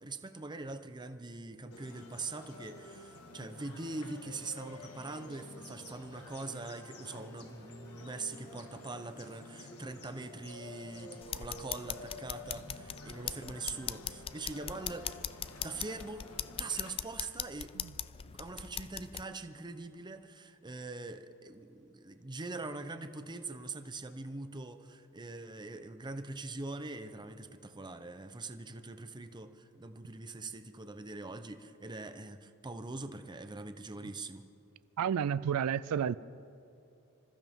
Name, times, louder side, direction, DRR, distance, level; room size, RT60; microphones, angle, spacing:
voice 1, 0.0-15.2 15.6-16.3 16.6-17.7 18.3-34.5, right 3 dB, 20° right, 8 dB, 0.8 m, -43 dB
sound 1, 1.7-16.9, left 2 dB, 80° left, 1.8 m, -50 dB
sound 2, 11.2-19.2, left 9 dB, 25° left, 0.3 m, -40 dB
voice 2, 35.0-36.2, right 8 dB, 85° right, 17 dB, 0.4 m, -31 dB
26.5 x 14.5 x 3.6 m, 2.8 s
head